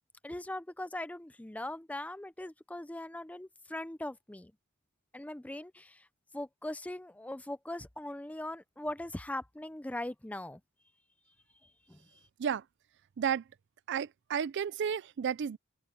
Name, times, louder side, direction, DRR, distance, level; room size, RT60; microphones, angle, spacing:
voice 1, 0.2-4.5 5.1-6.0 6.3-10.6 11.9-12.0, left 1 dB, 5° left, 0.5 m, -40 dB
voice 2, 13.9-15.6, right 7 dB, 55° right, 0.4 m, -32 dB
open air
head